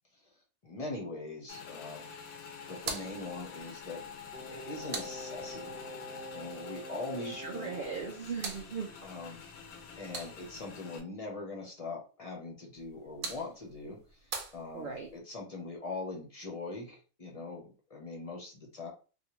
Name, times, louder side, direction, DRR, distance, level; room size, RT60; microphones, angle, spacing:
voice 1, 0.6-2.1 2.7-4.1 4.5-5.8 6.3-7.7 9.0-9.6 10.0-18.9, left 3 dB, 30° left, -1 dB, 0.7 m, -42 dB
Motorcycle / Engine, 1.5-11.0, left 6 dB, 80° left, 1.1 m, -47 dB
sound 1, 2.7-5.8 7.8-10.7 12.7-15.2, right 4 dB, 75° right, 1.2 m, -45 dB
Singing, 4.3-8.2 8.5-8.6, equal, 10° right, 0.4 m, -45 dB
voice 2, 7.1-8.9 14.7-15.1, right 5 dB, 60° right, 1 dB, 0.5 m, -38 dB
3.4 x 2.3 x 3.0 m, 0.35 s
omnidirectional pair, 1.5 m